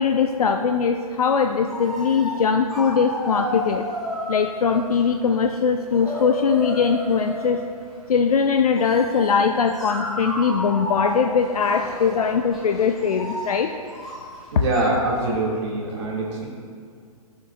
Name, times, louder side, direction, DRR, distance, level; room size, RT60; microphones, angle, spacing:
voice 1, 0.0-3.8 4.3-7.6 8.1-13.7, left 6 dB, 70° left, 5 dB, 0.5 m, -21 dB
sound 1, 1.4-1.5 1.7-2.4 2.7-5.2 5.7-7.5 8.7-14.9, equal, ahead, 1.8 m, -32 dB
voice 2, 14.5-16.5, right 2 dB, 45° right, -3 dB, 2.2 m, -24 dB
13.0 x 7.1 x 2.4 m, 2.1 s
figure-of-eight pair, 125°, 20 cm